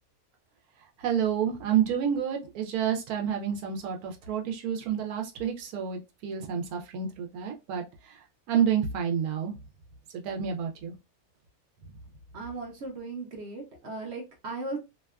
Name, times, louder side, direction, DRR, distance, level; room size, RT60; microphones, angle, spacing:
voice 1, 1.0-7.8 8.5-9.5 10.2-10.9, right 8 dB, 85° right, 1.1 m, -29 dB
voice 2, 12.3-14.8, right 3 dB, 60° right, 0.8 m, -37 dB
2.8 x 2.3 x 2.2 m
omnidirectional pair, 1.5 m